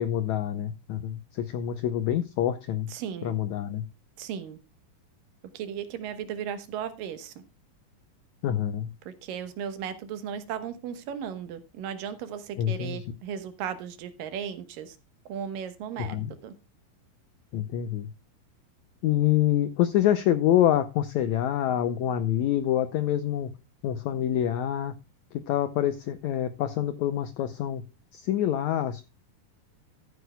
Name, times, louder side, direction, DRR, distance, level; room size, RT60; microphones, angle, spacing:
voice 1, 0.0-2.9 3.2-3.9 8.4-8.9 12.6-13.0 16.0-16.3 17.5-18.1 19.0-23.5 23.8-25.0 25.3-27.8 28.1-29.0, left 11 dB, 85° left, 12 dB, 1.6 m, -26 dB
voice 2, 2.9-3.4 4.2-4.6 5.5-7.3 9.1-15.0 15.3-16.2 16.4-16.5, right 8 dB, 75° right, 10 dB, 2.8 m, -36 dB
14.5 x 9.6 x 2.2 m, 0.28 s
omnidirectional pair, 4.1 m